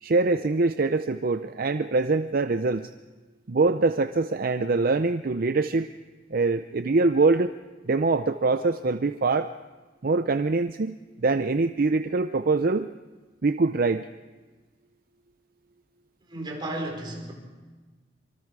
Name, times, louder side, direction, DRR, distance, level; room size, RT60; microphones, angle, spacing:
voice 1, 0.0-2.9 3.5-5.9 6.3-7.5 7.9-9.5 10.0-12.9 13.4-14.1, right 3 dB, 55° right, 9 dB, 0.6 m, -24 dB
voice 2, 16.2-17.3, right 1 dB, 25° right, 0 dB, 5.0 m, -34 dB
25.5 x 25.0 x 4.8 m, 1.3 s
head